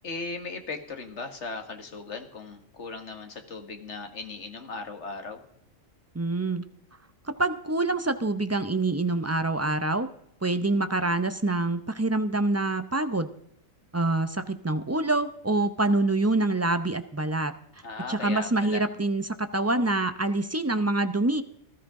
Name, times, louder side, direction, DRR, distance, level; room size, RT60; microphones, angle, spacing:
voice 1, 0.0-5.4 17.8-18.8, left 3 dB, 55° left, 6 dB, 2.0 m, -37 dB
voice 2, 6.1-6.6 7.4-10.1 10.4-13.3 13.9-17.5 18.1-21.4, right 2 dB, 20° right, 10 dB, 0.4 m, -26 dB
19.0 x 13.0 x 3.7 m, 0.73 s
omnidirectional pair, 1.4 m